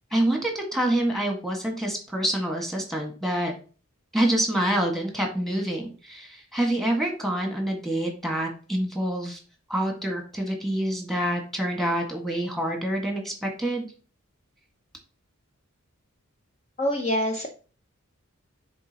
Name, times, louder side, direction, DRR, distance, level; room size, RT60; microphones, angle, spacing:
voice 1, 0.1-3.5 4.1-9.4 9.7-13.9, right 1 dB, ahead, 1 dB, 1.6 m, -27 dB
voice 2, 16.8-17.5, equal, 30° left, 2 dB, 0.8 m, -25 dB
9.6 x 3.8 x 2.9 m, 0.36 s
head